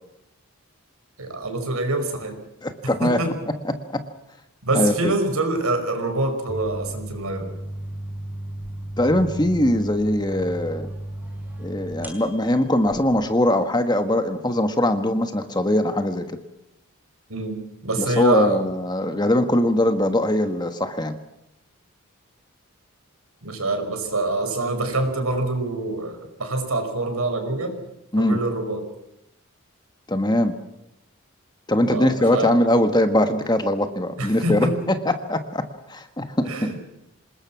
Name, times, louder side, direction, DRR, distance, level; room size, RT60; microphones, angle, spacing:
voice 1, 1.2-2.4 3.0-3.4 4.6-7.5 17.3-18.6 23.4-27.8 28.2-28.9 31.9-32.5 34.2-34.8 36.5-36.8, right 2 dB, 85° right, 6 dB, 5.3 m, -25 dB
voice 2, 2.6-3.2 3.6-4.0 4.7-5.1 9.0-10.9 11.6-16.4 18.0-21.2 28.1-28.4 30.1-30.6 31.7-36.7, left 1 dB, 20° left, 7 dB, 1.5 m, -21 dB
sound 1, 6.5-13.5, right 1 dB, 10° right, 4.6 m, -35 dB
27.0 x 20.0 x 6.0 m, 0.85 s
head